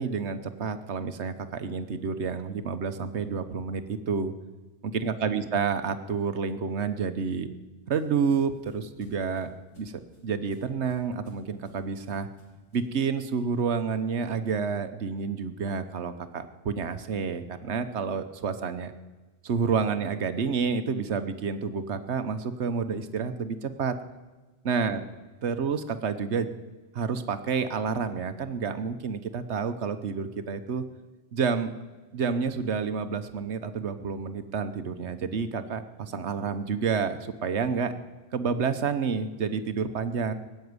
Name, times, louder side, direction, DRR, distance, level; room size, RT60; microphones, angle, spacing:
voice 1, 0.0-4.3 4.8-7.5 7.9-9.5 9.8-9.9 10.2-12.3 12.7-18.9 19.4-24.0 24.6-25.0 25.4-26.5 26.9-30.8 31.3-31.7 32.1-37.9 38.3-40.3, right 5 dB, 70° right, 11 dB, 1.3 m, -29 dB
sound 1, 7.6-13.0, equal, 65° left, 5.4 m, -56 dB
18.5 x 7.9 x 9.6 m, 1.2 s
omnidirectional pair, 1.2 m